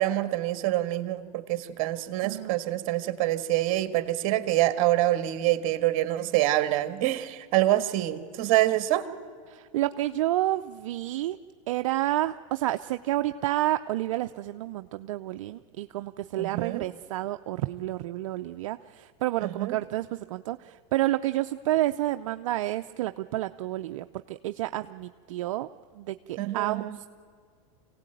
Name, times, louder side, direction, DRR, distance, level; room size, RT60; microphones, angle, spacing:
voice 1, 0.0-9.0 16.4-16.9 19.4-19.7 26.4-27.0, right 15 dB, 55° right, 11 dB, 1.6 m, -26 dB
voice 2, 2.2-2.6 9.5-11.4 11.7-25.7 25.9-27.1, right 15 dB, 75° right, 9 dB, 0.6 m, -30 dB
25.0 x 17.0 x 9.1 m, 2.1 s
supercardioid pair, 120°, 17 cm